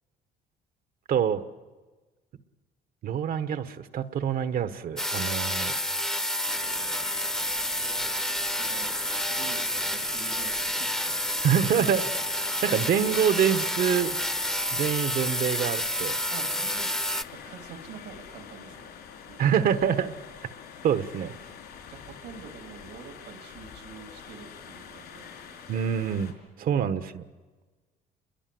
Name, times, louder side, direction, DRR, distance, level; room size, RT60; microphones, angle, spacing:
voice 1, 1.1-1.4 3.0-5.7 11.4-12.0 12.3-14.2 14.7-16.2 19.4-20.1 20.8-21.3 25.7-26.3 26.6-27.2, right 8 dB, 60° right, 12 dB, 1.3 m, -26 dB
sound 1, 5.0-17.2, equal, 5° left, 1.0 m, -29 dB
sound 2, 6.4-26.3, left 7 dB, 70° left, 4.8 m, -45 dB
voice 2, 7.7-11.2 16.3-16.9 17.4-18.9 19.3-19.5 21.9-25.6 26.6-26.9, right 7 dB, 85° right, 7 dB, 3.0 m, -47 dB
28.0 x 22.0 x 7.8 m, 1.3 s
cardioid pair, 110°, 17 cm